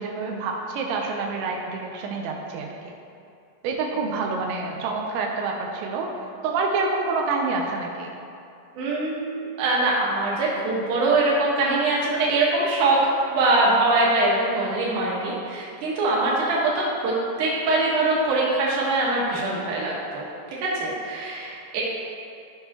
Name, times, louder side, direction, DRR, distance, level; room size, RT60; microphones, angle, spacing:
voice 1, 0.0-2.9 3.6-6.1 6.4-8.1, right 4 dB, 90° right, 1 dB, 3.1 m, -27 dB
voice 2, 8.8-13.0 13.3-20.2 20.6-21.8, right 2 dB, 60° right, -5 dB, 2.6 m, -23 dB
13.5 x 5.4 x 3.0 m, 2.5 s
omnidirectional pair, 5.0 m